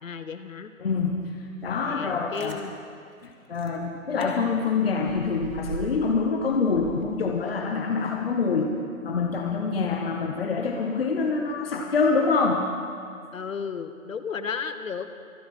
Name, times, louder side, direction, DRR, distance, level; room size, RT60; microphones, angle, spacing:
voice 1, 0.0-0.7 1.8-2.8 13.3-15.1, left 6 dB, 70° left, 10 dB, 1.1 m, -34 dB
voice 2, 0.8-1.3 1.6-2.6 3.2-8.7 9.0-12.7, left 4 dB, 45° left, 2 dB, 1.0 m, -25 dB
Chewing mastication, 2.1-2.6 3.2-3.3 3.6-3.8 4.2-4.3 4.6-6.1 6.5-7.7 8.1-8.2, right 3 dB, 75° right, 2.3 m, -40 dB
25.0 x 8.9 x 4.3 m, 2.4 s
hypercardioid pair, 170°, 42 cm